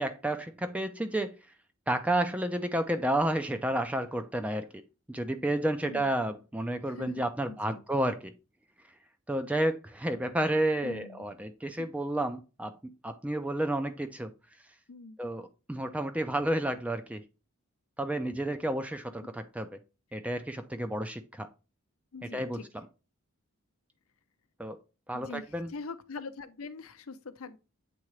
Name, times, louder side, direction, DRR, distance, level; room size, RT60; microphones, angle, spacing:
voice 1, 0.0-1.4 1.9-4.8 5.1-8.3 9.3-14.3 15.2-17.2 18.0-19.7 20.1-21.5 22.3-22.6 24.6-24.8 25.1-25.7, right 1 dB, 5° right, 0.3 m, -31 dB
voice 2, 5.8-6.2 6.9-7.8 10.8-11.3 11.8-11.9 14.9-15.2 22.1-22.7 25.1-27.6, left 4 dB, 75° left, 0.6 m, -43 dB
8.4 x 3.7 x 3.1 m
head